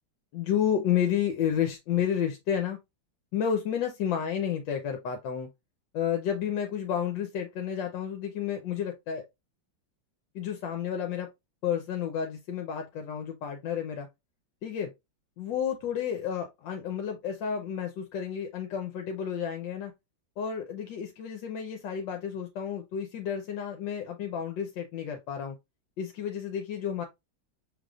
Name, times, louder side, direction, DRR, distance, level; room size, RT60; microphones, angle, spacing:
voice 1, 0.3-2.8 3.3-5.5 5.9-9.2 10.3-11.3 11.6-14.1 14.6-14.9 15.4-19.9 20.4-25.5 26.0-27.0, left 8 dB, 80° left, 1.4 m, -31 dB
6.4 x 3.4 x 2.4 m
omnidirectional pair, 2.1 m